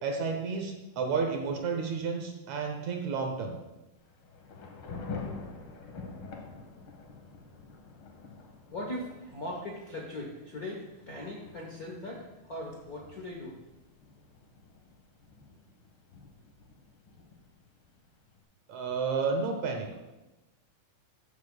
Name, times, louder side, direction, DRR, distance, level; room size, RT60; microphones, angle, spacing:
voice 1, 0.0-3.6 18.7-20.0, right 5 dB, 70° right, 3 dB, 2.0 m, -31 dB
Thunder / Rain, 4.0-18.4, left 4 dB, 55° left, 1.5 m, -47 dB
voice 2, 8.7-13.6, left 1 dB, 85° left, -2 dB, 0.8 m, -39 dB
14.0 x 8.3 x 2.3 m, 1.0 s
omnidirectional pair, 3.7 m